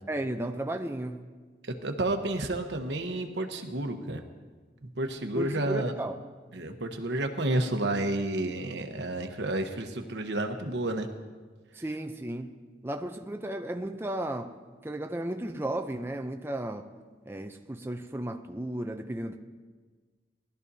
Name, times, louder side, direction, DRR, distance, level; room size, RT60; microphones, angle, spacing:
voice 1, 0.1-1.2 5.3-6.2 11.7-12.6 12.8-14.6 14.8-16.9 17.3-19.4, right 1 dB, 15° right, 5 dB, 0.5 m, -34 dB
voice 2, 1.8-4.2 5.0-5.9 6.5-11.1, right 1 dB, 80° right, 6 dB, 1.0 m, -30 dB
19.5 x 12.5 x 2.7 m, 1.4 s
head